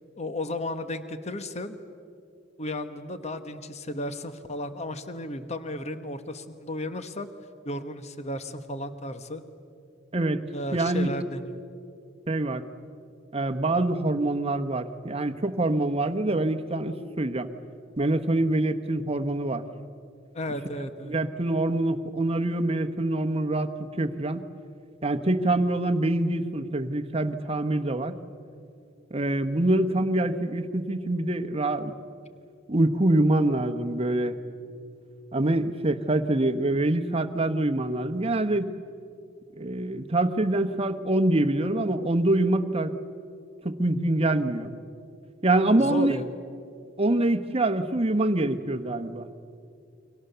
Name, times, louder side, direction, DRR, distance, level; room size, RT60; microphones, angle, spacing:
voice 1, 0.2-1.8 2.6-7.3 7.6-9.4 10.5-11.6 20.3-21.2 45.8-46.3, left 1 dB, 35° left, 10 dB, 1.2 m, -34 dB
voice 2, 10.1-10.4 10.7-11.1 12.3-12.6 13.3-17.5 18.0-19.6 21.1-23.7 24.0-24.4 25.0-28.1 29.1-31.9 32.7-34.4 35.3-38.7 39.6-42.9 43.6-44.7 45.4-46.2 47.0-49.3, right 1 dB, 30° right, 9 dB, 1.1 m, -25 dB
29.0 x 24.0 x 6.9 m, 2.4 s
head